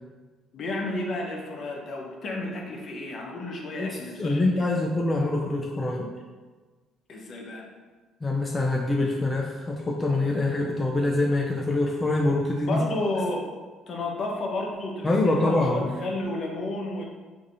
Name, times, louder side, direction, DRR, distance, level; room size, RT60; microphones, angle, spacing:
voice 1, 0.5-4.8 7.1-7.7 12.7-13.5 13.9-17.0, left 2 dB, 55° left, 0 dB, 0.7 m, -32 dB
voice 2, 3.8-6.1 8.2-12.8 15.0-15.9, left 2 dB, 20° left, -2 dB, 0.5 m, -25 dB
4.7 x 2.6 x 2.7 m, 1.3 s
cardioid pair, 90°, 0 cm